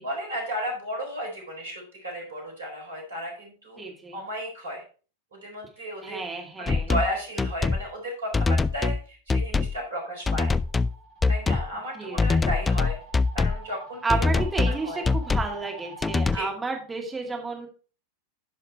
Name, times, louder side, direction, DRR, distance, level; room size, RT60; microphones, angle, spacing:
voice 1, 0.0-3.8 4.1-4.8 5.3-6.2 6.6-10.5 11.3-13.0 13.3-14.2 14.6-15.1 16.3-16.5, equal, 70° right, 0 dB, 4.1 m, -34 dB
voice 2, 3.8-4.2 6.0-6.9 11.9-12.5 14.0-17.7, right 3 dB, 10° right, 0 dB, 2.3 m, -32 dB
sound 1, 6.7-7.1 7.4-7.9 8.3-9.0 9.3-9.8 10.3-10.9 11.2-11.7 12.2-13.6 14.1-14.8 15.1-15.5 16.0-16.4, left 3 dB, 15° left, 0.3 m, -23 dB
sound 2, 10.2-16.2, right 3 dB, 35° right, 3.8 m, -46 dB
9.3 x 5.7 x 4.3 m, 0.38 s
figure-of-eight pair, 90°, 0 cm